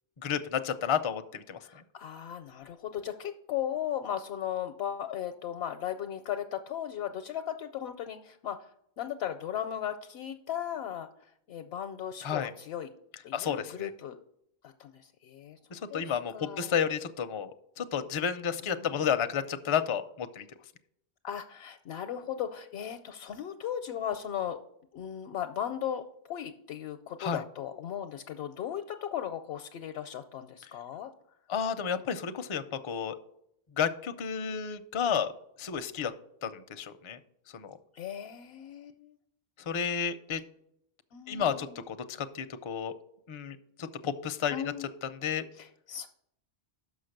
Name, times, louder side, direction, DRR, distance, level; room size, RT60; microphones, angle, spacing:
voice 1, 0.2-1.8 12.2-12.5 13.3-13.9 15.7-20.5 27.2-27.4 31.5-33.2 33.8-35.3 35.6-36.1 36.4-37.2 37.5-37.8 39.7-40.4 41.3-42.9 43.3-44.6 45.2-45.5, left 7 dB, 45° left, 9 dB, 0.4 m, -31 dB
voice 2, 1.6-12.9 13.2-14.2 14.6-16.0 16.3-16.7 18.6-19.1 21.2-24.6 24.9-31.1 37.9-39.2 41.1-41.8 44.5-44.9 45.5-46.1, left 10 dB, 80° left, 7 dB, 0.8 m, -37 dB
6.3 x 5.6 x 6.5 m, 0.73 s
omnidirectional pair, 1.0 m